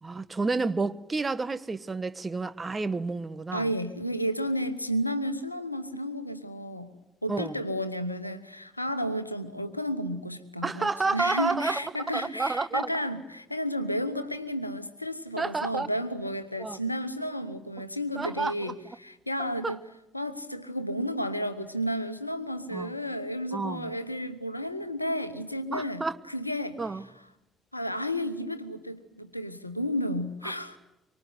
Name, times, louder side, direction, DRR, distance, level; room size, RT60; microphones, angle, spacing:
voice 1, 0.0-3.7 7.3-7.6 10.6-11.8 12.1-13.0 15.4-15.9 16.6-16.8 18.1-18.7 19.6-19.8 22.7-22.9 23.5-23.9 25.7-26.2 26.8-27.0 30.4-30.5, right 3 dB, 25° right, 1.3 m, -30 dB
voice 2, 3.5-6.9 7.2-19.8 20.1-26.8 27.7-30.8, equal, 90° left, 1.0 m, -32 dB
25.0 x 24.5 x 9.7 m
figure-of-eight pair, 45°, 0 cm